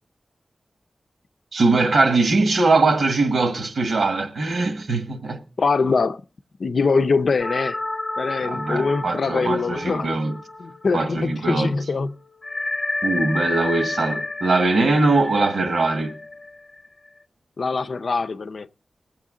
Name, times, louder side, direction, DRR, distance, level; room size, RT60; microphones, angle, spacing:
voice 1, 1.5-5.4 8.4-10.3 10.9-11.7 13.0-16.1, right 3 dB, 75° right, 1.4 m, -21 dB
voice 2, 5.6-6.2 6.6-7.8 8.2-10.2 10.6-12.1 17.6-18.7, left 4 dB, 65° left, 0.5 m, -23 dB
sound 1, 7.4-11.4 11.7-11.8 12.4-17.1, left 2 dB, 30° left, 0.8 m, -30 dB
20.5 x 7.8 x 3.7 m
wide cardioid pair, 100°, 0 cm